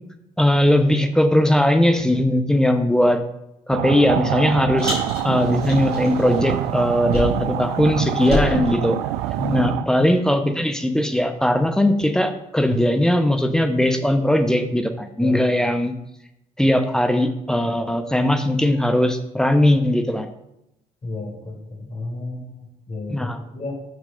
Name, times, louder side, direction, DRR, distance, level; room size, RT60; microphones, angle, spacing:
voice 1, 0.4-3.2 3.7-5.0 5.2-9.0 9.5-15.9 16.6-20.3 23.1-23.4, left 1 dB, 5° left, 7 dB, 0.9 m, -19 dB
sound 1, 3.7-9.8, right 13 dB, 65° right, 0.4 m, -26 dB
Car, 4.8-7.6 7.8-9.7, left 1 dB, 90° right, 1.8 m, -29 dB
voice 2, 9.4-10.1 15.2-15.4 21.0-23.8, left 2 dB, 35° left, 0 dB, 3.0 m, -31 dB
12.0 x 6.3 x 2.6 m, 0.84 s
figure-of-eight pair, 45°, 19 cm